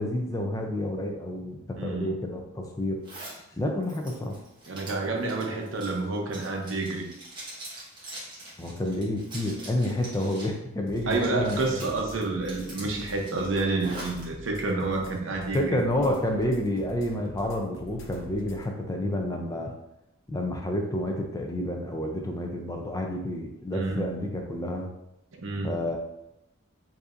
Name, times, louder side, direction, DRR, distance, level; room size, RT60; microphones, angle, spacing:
voice 1, 0.0-3.0 3.6-4.4 8.6-11.8 15.5-19.7 20.3-24.9 25.6-26.0, left 1 dB, 15° left, 2 dB, 0.4 m, -29 dB
voice 2, 1.8-2.1 4.7-7.1 11.1-16.1 23.7-24.1 25.4-25.7, right 3 dB, 65° right, 2 dB, 0.7 m, -29 dB
Zipper (clothing), 3.0-3.4 3.8-10.6 10.9-12.0 12.4-14.2, right 1 dB, 20° right, 1.2 m, -43 dB
sound 1, 10.9-18.7, left 1 dB, 60° left, 0.6 m, -45 dB
5.0 x 2.7 x 2.5 m, 0.84 s
head